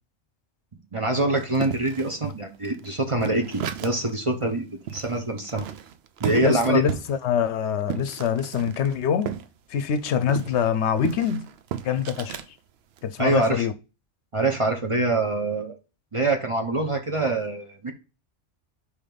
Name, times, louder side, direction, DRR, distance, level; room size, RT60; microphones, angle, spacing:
voice 1, 0.9-5.7 6.2-6.9 13.2-13.7 14.3-15.7 16.1-17.9, right 2 dB, 30° right, 0.8 m, -25 dB
sound 1, 1.4-4.2 4.5-4.6 4.9-9.5 9.8-12.5 13.0-13.4, right 8 dB, 65° right, 0.8 m, -34 dB
voice 2, 6.4-9.3 9.7-11.5 11.8-12.4 13.0-13.7, left 7 dB, 70° left, 0.8 m, -24 dB
5.1 x 4.9 x 3.8 m
omnidirectional pair, 1.2 m